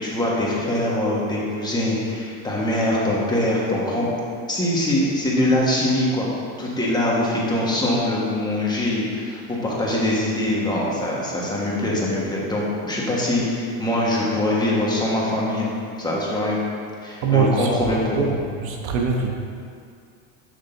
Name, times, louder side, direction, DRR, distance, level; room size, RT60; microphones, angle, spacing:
voice 1, 0.0-4.1 4.5-6.3 6.6-15.7 16.0-16.6 17.0-18.3, left 1 dB, 10° left, -5 dB, 1.4 m, -23 dB
voice 2, 17.2-17.7 18.2-18.3 18.6-19.3, right 5 dB, 80° right, 2 dB, 1.1 m, -21 dB
9.5 x 6.5 x 2.7 m, 2.3 s
supercardioid pair, 125°, 40 cm